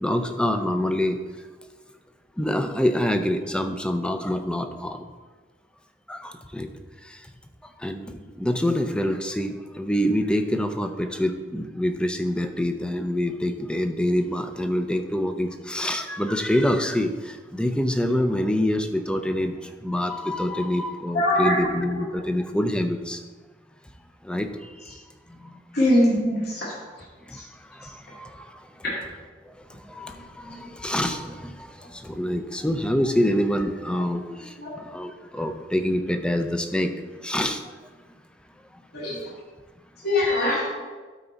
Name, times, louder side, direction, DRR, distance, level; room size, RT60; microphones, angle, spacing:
voice 1, 0.0-1.2 2.4-5.1 6.1-6.7 7.8-19.5 19.8-23.2 24.2-24.5 25.3-25.5 27.3-27.4 27.8-28.4 29.5-29.6 29.9-36.9 37.2-37.6, left 1 dB, 5° left, 7 dB, 0.5 m, -26 dB
voice 2, 21.1-21.7 22.0-22.1 25.7-26.7 27.3-27.4 34.6-34.7 38.9-39.2 40.0-40.7, left 1 dB, 60° left, -5 dB, 2.3 m, -22 dB
12.5 x 4.5 x 4.0 m, 1.4 s
head